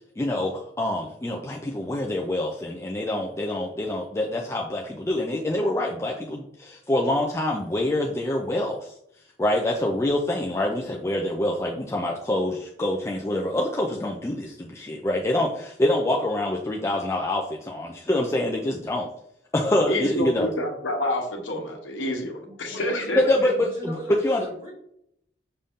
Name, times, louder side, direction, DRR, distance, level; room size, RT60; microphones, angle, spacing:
voice 1, 0.2-8.9 9.4-19.1 19.5-20.5 23.3-23.5 23.8-23.9 24.2-24.4, left 1 dB, 15° left, -1 dB, 0.3 m, -26 dB
voice 2, 19.9-23.2, left 1 dB, 85° left, 2 dB, 1.0 m, -28 dB
voice 3, 22.4-23.3 23.6-24.7, equal, 40° right, -4 dB, 1.7 m, -37 dB
5.4 x 2.6 x 3.5 m, 0.73 s
head